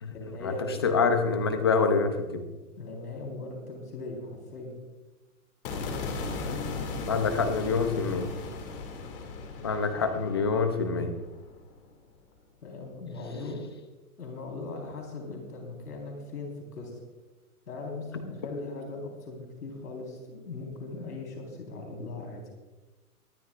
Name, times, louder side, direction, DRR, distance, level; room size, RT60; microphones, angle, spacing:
voice 1, 0.1-1.0 2.8-4.8 9.9-10.0 12.6-13.6 14.2-16.9 17.7-22.4, left 3 dB, 85° left, 1 dB, 4.3 m, -39 dB
voice 2, 0.8-2.5 6.4-8.3 9.6-11.1, left 4 dB, 20° left, 8 dB, 0.5 m, -26 dB
sound 1, 5.7-11.9, left 4 dB, 35° left, 2.4 m, -37 dB
23.0 x 12.5 x 2.4 m, 1.2 s
hypercardioid pair, 160°, 45 cm